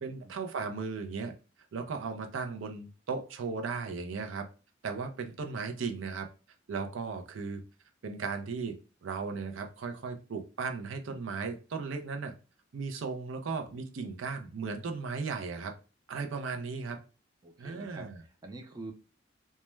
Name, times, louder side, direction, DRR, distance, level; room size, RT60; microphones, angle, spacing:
voice 1, 0.0-1.3 1.7-4.4 4.8-6.3 6.7-7.6 8.0-12.3 12.7-15.7 16.1-17.0 17.6-18.2, right 4 dB, 90° right, 5 dB, 0.4 m, -36 dB
voice 2, 17.4-18.9, right 2 dB, 20° right, 3 dB, 0.4 m, -45 dB
2.2 x 2.1 x 3.0 m, 0.34 s
head